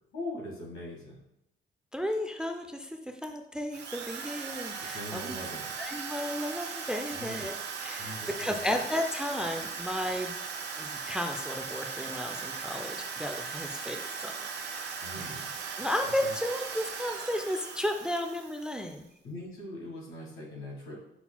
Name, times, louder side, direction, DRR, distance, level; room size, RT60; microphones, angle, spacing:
voice 1, 0.1-1.2 4.8-5.7 7.1-7.5 8.0-8.8 15.0-15.5 16.1-16.4 19.2-21.0, left 1 dB, 90° left, -2 dB, 1.7 m, -41 dB
voice 2, 1.9-5.3 5.8-7.6 7.8-10.4 10.8-15.4 15.8-19.1, left 1 dB, 5° right, 4 dB, 0.4 m, -34 dB
Drill, 3.7-18.9, right 5 dB, 60° right, 0.6 m, -38 dB
5.8 x 3.8 x 2.2 m, 0.83 s
cardioid pair, 90°, 20 cm